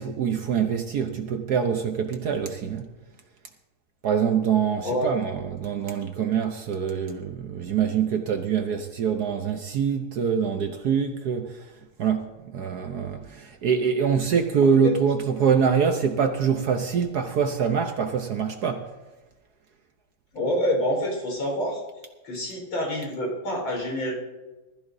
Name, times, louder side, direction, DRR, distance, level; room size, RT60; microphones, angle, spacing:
voice 1, 0.0-2.9 4.0-11.6 12.0-18.8, right 7 dB, 60° right, 1.1 m, -24 dB
voice 2, 20.3-21.8 22.2-24.1, left 1 dB, 70° left, 5.2 m, -27 dB
19.5 x 14.0 x 2.7 m
omnidirectional pair, 2.4 m